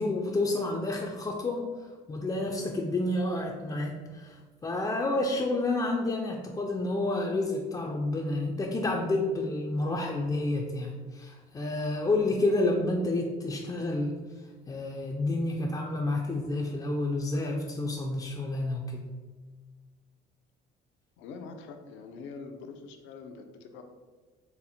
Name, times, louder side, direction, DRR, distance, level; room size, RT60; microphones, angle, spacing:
voice 1, 0.0-14.2 14.7-19.1, left 2 dB, 20° left, -1 dB, 0.4 m, -30 dB
voice 2, 21.2-23.8, left 4 dB, 80° left, 6 dB, 0.5 m, -44 dB
4.1 x 2.1 x 4.1 m, 1.4 s
cardioid pair, 95°, 19 cm